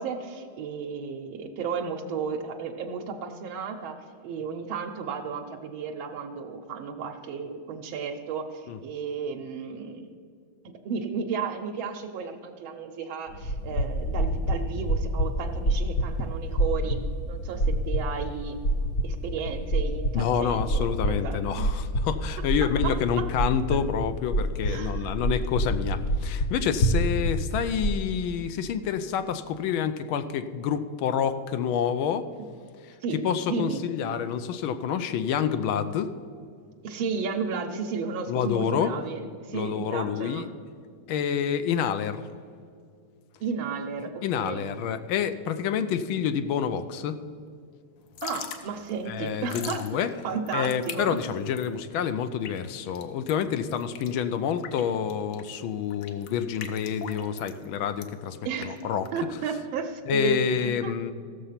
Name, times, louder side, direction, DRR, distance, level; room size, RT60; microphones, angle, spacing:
voice 1, 0.0-10.1 10.6-18.6 19.0-21.4 22.8-23.2 23.7-23.8 24.7-25.1 33.0-33.2 33.5-33.8 36.8-40.5 43.4-44.7 48.2-49.8 50.2-51.2 58.4-58.8 59.1-60.9, right 5 dB, 80° right, 3 dB, 1.5 m, -33 dB
sound 1, 13.3-28.0, equal, 50° left, 0.9 m, -28 dB
voice 2, 20.1-32.3 33.2-36.1 38.3-38.9 39.5-40.5 41.1-42.2 44.2-47.2 49.1-50.1 50.5-58.4 58.6-59.1 60.1-61.1, left 8 dB, 90° left, 10 dB, 1.5 m, -28 dB
Drip / Trickle dribble, 48.0-59.6, left 8 dB, 70° left, 1.4 m, -42 dB
15.5 x 6.8 x 5.7 m, 2.3 s
omnidirectional pair, 2.2 m